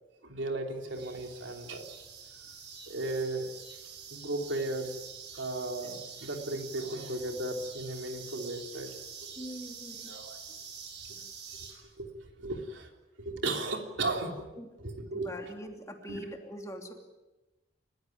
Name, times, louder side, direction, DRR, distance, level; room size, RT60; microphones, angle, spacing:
voice 1, 0.2-1.8 2.9-3.5 4.1-5.0 5.3-8.9 9.2-9.5 10.1-10.4 11.2-11.3 11.7-12.1 12.4-12.9 13.2-14.4 14.8-15.5 16.1-16.3, right 2 dB, 80° right, 3 dB, 3.5 m, -35 dB
sound 1, 0.9-11.7, right 6 dB, 60° right, 6.1 m, -46 dB
voice 2, 9.4-10.2 14.5-14.7 15.1-16.9, equal, 15° left, 3 dB, 2.9 m, -42 dB
30.0 x 16.0 x 9.4 m, 1.1 s
head